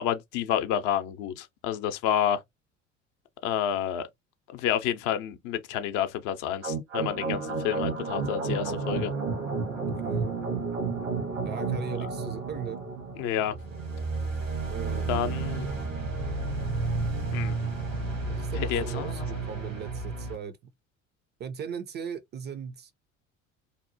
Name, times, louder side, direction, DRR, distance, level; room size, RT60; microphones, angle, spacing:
voice 1, 0.0-2.4 3.4-4.1 4.5-9.1 13.2-13.5 15.1-15.7 17.3-17.5 18.6-19.5, left 10 dB, 55° left, 0.6 m, -29 dB
sound 1, 6.6-20.4, right 4 dB, 80° right, 1.0 m, -31 dB
voice 2, 9.7-10.3 11.4-12.8 14.7-15.4 18.3-20.6 21.4-22.9, right 7 dB, 30° right, 0.4 m, -38 dB
2.8 x 2.0 x 2.6 m
figure-of-eight pair, 60°, 38 cm